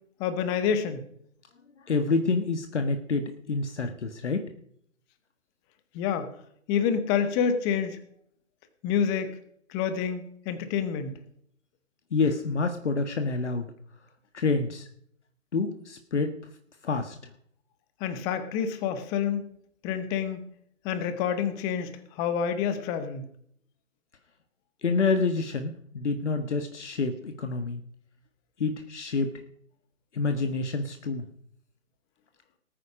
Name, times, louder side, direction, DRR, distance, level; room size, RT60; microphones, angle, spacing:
voice 1, 0.2-1.1 5.9-6.3 6.7-8.0 8.8-9.3 9.7-11.1 18.0-19.5 19.8-20.4 20.8-23.3, left 7 dB, 10° left, 11 dB, 0.7 m, -28 dB
voice 2, 1.9-4.5 12.1-13.7 14.3-14.9 15.5-16.3 16.8-17.2 24.8-27.8 28.6-29.3 30.1-31.2, left 4 dB, 60° left, 7 dB, 1.6 m, -27 dB
19.5 x 9.1 x 5.1 m, 0.66 s
figure-of-eight pair, 140°, 40 cm